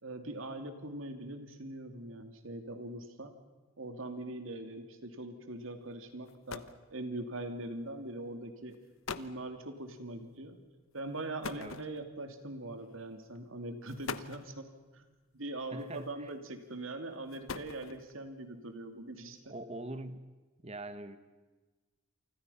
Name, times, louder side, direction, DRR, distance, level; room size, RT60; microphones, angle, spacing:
voice 1, 0.0-3.3 3.8-8.7 9.2-10.6 10.9-14.6 14.9-15.1 15.3-19.5, right 2 dB, 75° right, 2.7 m, -42 dB
sound 1, 5.9-6.0 6.3-6.9 7.9-8.1 8.7-8.8 9.0-9.4 11.4-12.3 13.2-13.4 13.9-14.5 15.8-16.3 17.1-18.2, left 5 dB, 75° left, 1.0 m, -42 dB
voice 2, 15.7-16.3 19.5-20.3 20.6-21.2, right 2 dB, 30° right, 1.3 m, -43 dB
28.5 x 25.0 x 5.7 m
head